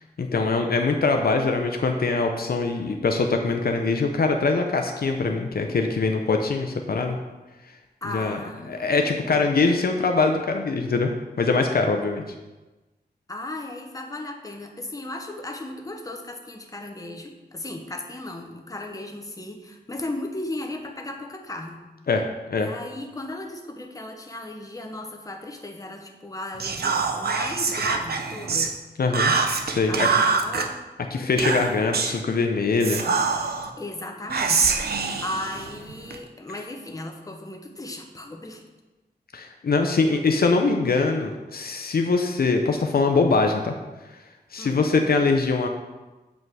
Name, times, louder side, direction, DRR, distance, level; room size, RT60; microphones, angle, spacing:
voice 1, 0.2-7.2 8.1-8.4 8.7-11.1 11.4-12.2 22.1-22.2 22.5-22.7 29.0-29.3 29.6-30.1 31.1-33.0 39.3-43.7 44.1-44.2 44.5-45.7, left 4 dB, 60° left, 4 dB, 0.6 m, -23 dB
voice 2, 8.0-9.4 13.3-21.8 22.6-28.8 29.8-30.8 33.8-34.7 35.2-38.6 44.6-44.8, left 1 dB, 20° left, 3 dB, 1.0 m, -36 dB
Whispering, 26.6-28.7 29.1-30.7 31.4-32.2 32.8-33.7 34.3-36.2, right 5 dB, 65° right, 0.7 m, -24 dB
7.6 x 5.4 x 4.7 m, 1.1 s
wide cardioid pair, 95°, 17 cm